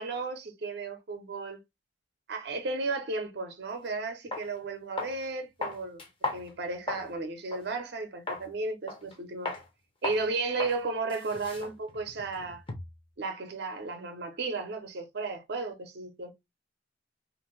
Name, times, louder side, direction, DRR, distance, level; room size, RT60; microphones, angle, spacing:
voice 1, 0.0-1.6 2.3-6.0 6.3-9.5 10.0-12.6 13.2-16.3, right 3 dB, 60° right, 0.6 m, -34 dB
sound 1, 3.7-3.8 4.3-4.5 5.0-5.2 5.6-7.1 7.5-7.7 8.3-8.5 8.9-9.2 9.5-9.6 10.0-10.3 10.6-10.8 11.1-13.0, left 3 dB, 30° left, 0.7 m, -36 dB
2.6 x 2.5 x 2.9 m
head